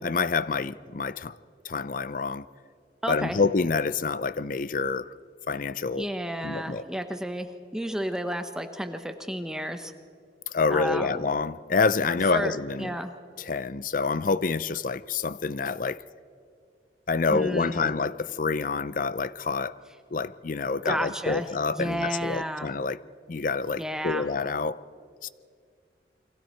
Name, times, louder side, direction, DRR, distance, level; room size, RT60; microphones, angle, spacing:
voice 1, 0.0-1.4 1.6-2.4 3.1-5.1 5.5-6.1 6.4-6.8 10.5-13.0 13.4-16.0 17.1-19.7 20.1-23.0 23.3-24.8 25.2-25.3, left 4 dB, 50° left, 0.5 m, -27 dB
voice 2, 3.0-3.4 5.9-7.5 7.7-9.9 10.7-11.3 12.3-13.1 17.3-17.9 20.8-21.5 21.7-22.7 23.8-24.3, equal, 5° right, 1.0 m, -31 dB
29.0 x 23.0 x 4.5 m
head